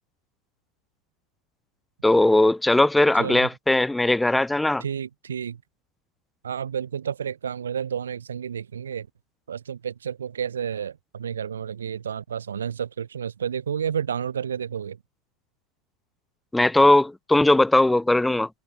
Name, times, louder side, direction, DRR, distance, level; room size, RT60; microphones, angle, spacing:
voice 1, 2.0-4.8 16.5-18.5, left 2 dB, 5° left, 2.4 m, -19 dB
voice 2, 3.2-3.5 4.8-5.6 6.4-9.1 9.5-15.0, right 8 dB, 70° right, 6.5 m, -31 dB
figure-of-eight pair, 90°, 0 cm